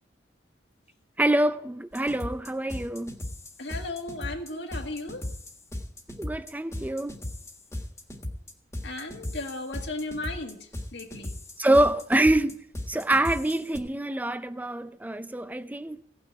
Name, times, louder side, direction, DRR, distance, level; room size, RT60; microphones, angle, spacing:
voice 1, 1.2-3.2 6.2-7.2 11.6-12.6 12.9-16.0, right 1 dB, 10° right, 0.5 m, -25 dB
sound 1, 1.9-13.8, left 1 dB, 15° left, 1.6 m, -37 dB
voice 2, 3.6-5.2 8.8-10.6 10.9-11.4, left 2 dB, 75° left, 1.9 m, -35 dB
16.5 x 6.1 x 8.5 m
head